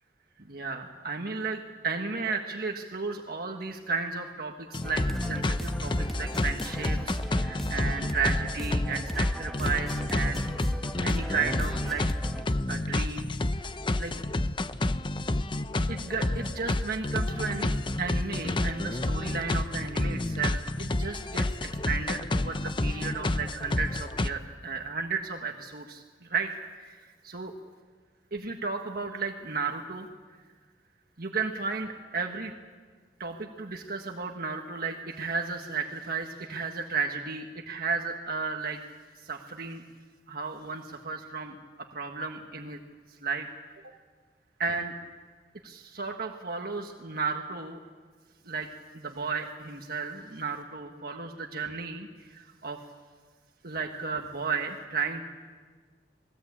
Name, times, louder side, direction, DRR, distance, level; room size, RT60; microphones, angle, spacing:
voice 1, 0.5-10.4 11.0-12.1 12.7-13.3 14.0-14.1 15.9-17.7 18.0-21.4 21.8-26.5 26.8-27.5 28.3-30.1 31.2-32.5 33.2-38.8 39.1-39.8 40.3-42.8 43.1-43.5 43.8-43.9 44.6-44.9 45.6-47.8 48.4-48.7 48.9-52.8 53.6-55.2, right 4 dB, 55° right, 3 dB, 1.5 m, -34 dB
sound 1, 4.7-24.3, left 2 dB, 30° left, 0.7 m, -30 dB
sound 2, 4.8-12.5, equal, ahead, 1.4 m, -36 dB
28.0 x 20.0 x 8.6 m, 1.5 s
head